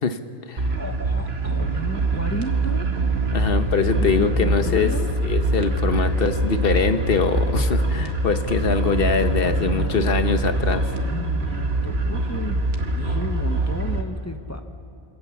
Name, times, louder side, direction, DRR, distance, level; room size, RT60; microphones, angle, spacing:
voice 1, 0.0-0.7 3.3-4.9 5.2-10.9, left 5 dB, 65° left, 9 dB, 1.3 m, -23 dB
voice 2, 0.6-2.9 3.9-5.1 5.9-6.2 9.3-10.1 11.0-12.6 12.9-14.6, equal, 15° left, 6 dB, 1.1 m, -34 dB
sound 1, 0.6-14.0, right 2 dB, 80° right, 1.9 m, -24 dB
27.5 x 18.0 x 7.3 m, 2.5 s
omnidirectional pair, 1.0 m